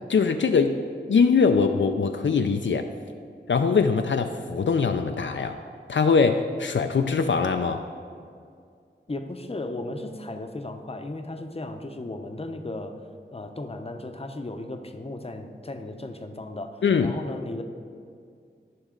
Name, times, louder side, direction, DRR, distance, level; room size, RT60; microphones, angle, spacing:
voice 1, 0.1-0.8 1.1-2.9 3.5-5.6 5.9-7.8 16.8-17.2, left 5 dB, 70° left, 6 dB, 0.4 m, -22 dB
voice 2, 9.1-13.0 13.3-17.6, left 2 dB, 30° left, 5 dB, 0.7 m, -35 dB
14.0 x 5.3 x 3.8 m, 2.2 s
wide cardioid pair, 65°, 20 cm